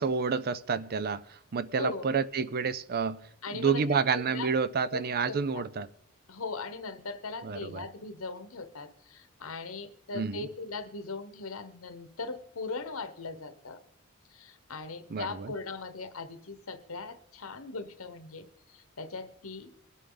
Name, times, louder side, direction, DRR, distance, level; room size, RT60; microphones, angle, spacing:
voice 1, 0.0-3.2 3.5-5.9 7.4-7.8 10.1-10.5 15.1-15.5, right 5 dB, 45° right, 0.5 m, -29 dB
voice 2, 1.8-2.1 3.4-4.5 4.9-5.0 5.2-5.6 6.3-13.8 14.3-19.7, left 3 dB, 70° left, 1.1 m, -39 dB
22.0 x 8.3 x 3.9 m
head